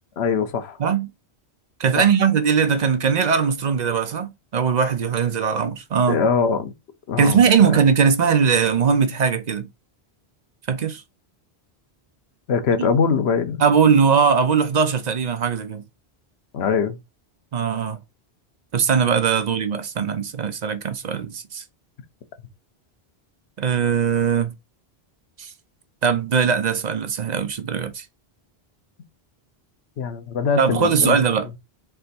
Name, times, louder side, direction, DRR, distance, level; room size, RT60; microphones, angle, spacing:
voice 1, 0.2-0.8 2.0-2.1 6.1-6.7 7.1-7.7 12.5-13.6 16.5-17.0 30.0-31.3, left 5 dB, 90° left, 1.0 m, -22 dB
voice 2, 1.8-6.2 7.2-9.7 10.7-11.0 13.6-15.8 17.5-18.0 18.7-21.6 23.6-24.5 25.4-25.5 26.0-28.1 30.6-31.5, right 6 dB, 50° right, 0.6 m, -20 dB
3.4 x 3.4 x 4.0 m
omnidirectional pair, 1.1 m